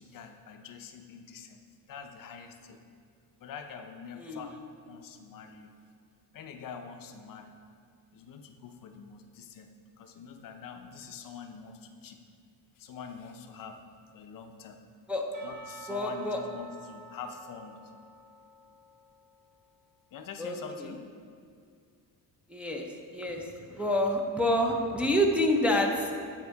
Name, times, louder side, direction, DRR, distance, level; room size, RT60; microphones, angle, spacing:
voice 1, 0.0-1.6 1.9-2.8 3.4-4.6 4.9-5.7 6.3-7.5 8.1-12.2 12.8-13.8 14.1-14.8 15.4-17.8 20.1-21.0, left 6 dB, 55° left, 6 dB, 0.6 m, -45 dB
voice 2, 4.2-4.6 15.1-15.3 15.9-16.4 20.4-20.6 22.5-26.1, left 1 dB, 5° right, 0 dB, 0.5 m, -28 dB
Percussion / Church bell, 15.3-19.7, right 2 dB, 50° right, 1.4 m, -51 dB
9.4 x 3.7 x 4.5 m, 2.2 s
cardioid pair, 135°, 39 cm